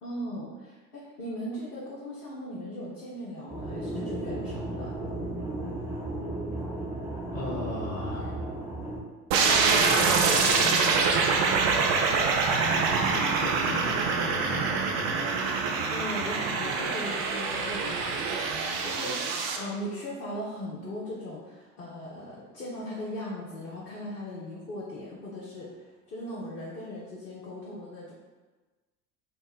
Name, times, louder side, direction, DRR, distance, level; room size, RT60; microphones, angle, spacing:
voice 1, 0.0-4.9 15.9-18.3 18.8-25.7 26.1-28.1, left 1 dB, 75° left, -7 dB, 0.8 m, -38 dB
sound 1, 3.5-9.0, right 1 dB, 10° right, 0.8 m, -34 dB
voice 2, 7.3-8.4 9.4-15.3, left 2 dB, 25° left, -5 dB, 0.4 m, -38 dB
sound 2, 9.3-19.6, right 4 dB, 45° right, 0.4 m, -25 dB
2.8 x 2.1 x 3.5 m, 1.3 s
figure-of-eight pair, 70°, 46 cm